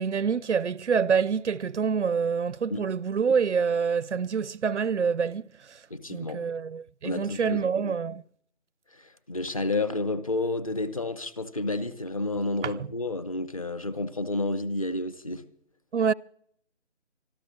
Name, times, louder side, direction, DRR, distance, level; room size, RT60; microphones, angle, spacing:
voice 1, 0.0-5.8 6.1-8.2 12.6-12.9 15.9-16.1, right 6 dB, 75° right, 0.6 m, -26 dB
voice 2, 5.9-6.4 7.0-8.0 8.9-15.4, left 2 dB, 30° left, 0.8 m, -30 dB
24.5 x 14.0 x 3.2 m
figure-of-eight pair, 160°, 35 cm